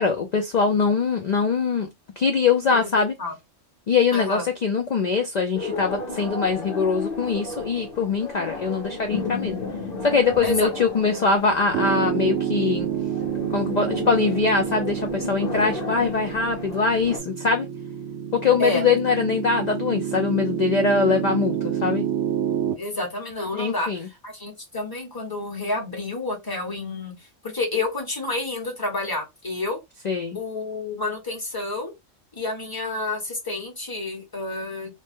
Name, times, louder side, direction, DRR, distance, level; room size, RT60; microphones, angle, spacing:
voice 1, 0.0-1.9 2.2-3.1 3.9-9.6 10.0-12.9 13.5-17.7 18.3-21.5 21.8-22.0 23.5-24.1 30.0-30.4, left 5 dB, 75° left, 0.4 m, -22 dB
voice 2, 2.7-3.4 4.1-4.4 10.4-10.7 18.6-18.8 22.8-23.9 24.2-27.2 27.4-29.8 30.3-31.9 32.4-34.9, left 2 dB, 20° left, 1.0 m, -29 dB
sound 1, 5.5-17.2, left 3 dB, 50° left, 1.1 m, -33 dB
Piano, 11.7-22.7, right 10 dB, 70° right, 0.8 m, -28 dB
2.7 x 2.1 x 3.4 m
omnidirectional pair, 1.3 m